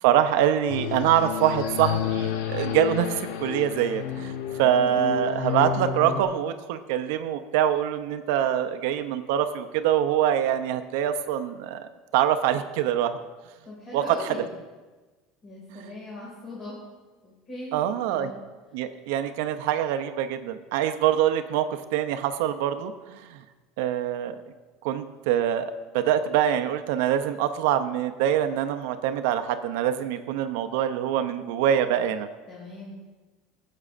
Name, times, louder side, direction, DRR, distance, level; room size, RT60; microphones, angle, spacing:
voice 1, 0.0-3.1 3.4-4.3 4.6-13.2 13.9-14.3 15.7-15.8 17.7-18.3 18.7-23.4 23.8-24.4 24.8-32.3, right 10 dB, 70° right, 9 dB, 0.5 m, -24 dB
sound 1, 0.7-6.2, left 9 dB, 85° left, 0.7 m, -30 dB
voice 2, 4.6-5.0 13.6-14.5 15.4-16.8 17.2-18.4 32.5-32.9, left 2 dB, 35° left, -6 dB, 2.1 m, -40 dB
16.0 x 7.3 x 2.5 m, 1.3 s
supercardioid pair, 150°, 0 cm